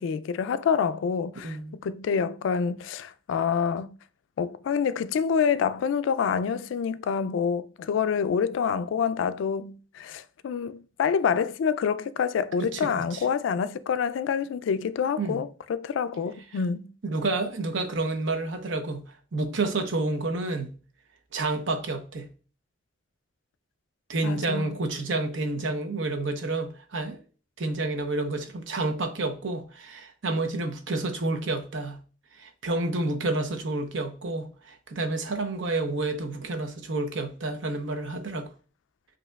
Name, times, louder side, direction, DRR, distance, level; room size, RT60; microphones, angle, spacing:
voice 1, 0.0-1.6 1.8-4.0 4.4-16.9 24.2-24.8, left 6 dB, 85° left, 0.3 m, -27 dB
voice 2, 1.4-1.8 12.7-13.2 15.2-15.4 17.0-19.0 19.3-20.7 21.3-22.3 24.1-27.2 27.6-32.0 32.4-38.5, right 2 dB, 80° right, 0.8 m, -29 dB
7.7 x 2.8 x 2.3 m
head